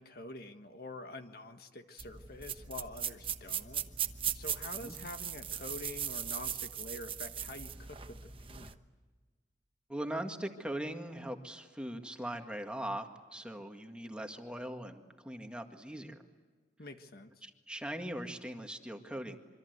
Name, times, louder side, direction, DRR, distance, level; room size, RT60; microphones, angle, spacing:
voice 1, 0.0-3.8 4.3-8.2 8.5-8.7 16.8-17.4, left 2 dB, 60° left, 7 dB, 1.6 m, -46 dB
sound 1, 2.0-8.7, right 9 dB, 30° right, 1.0 m, -39 dB
voice 2, 9.9-16.2 17.4-19.4, right 1 dB, 5° right, 4 dB, 1.8 m, -40 dB
26.5 x 25.0 x 8.1 m, 1.4 s
head